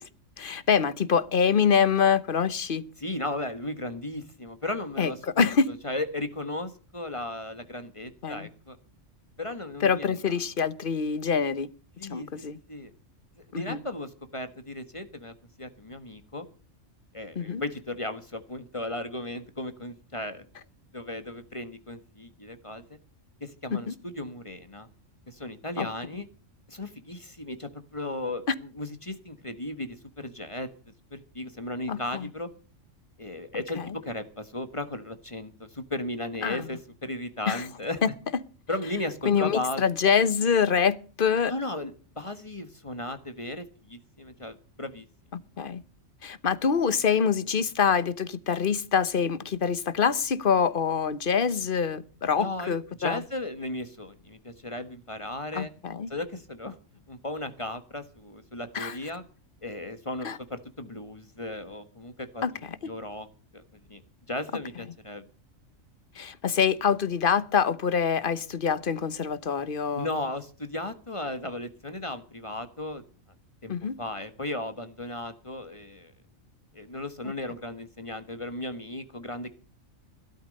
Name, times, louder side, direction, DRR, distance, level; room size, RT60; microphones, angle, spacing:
voice 1, 0.4-2.8 5.0-5.1 5.4-5.6 8.2-8.5 9.8-11.7 12.1-12.6 13.5-13.8 17.4-17.6 23.7-23.9 25.8-25.9 31.9-32.3 36.4-36.6 37.5-37.6 38.0-38.1 39.3-41.5 45.6-45.8 46.2-53.2 55.5-56.1 58.7-58.9 60.2-60.4 62.4-62.5 66.2-70.1 73.7-73.9, left 6 dB, 45° left, 1.1 m, -25 dB
voice 2, 3.0-8.8 9.4-10.3 12.0-12.9 13.5-16.5 17.1-20.5 20.9-23.0 23.4-24.9 25.3-26.3 26.7-30.7 31.1-32.5 33.2-38.0 38.7-39.8 41.5-45.1 52.4-55.7 56.1-56.8 57.1-59.2 59.6-63.3 63.5-63.6 63.9-64.0 64.3-65.3 69.9-73.0 73.6-76.1 76.7-79.5, left 1 dB, 25° left, 1.5 m, -36 dB
17.5 x 13.0 x 5.3 m
omnidirectional pair, 1.3 m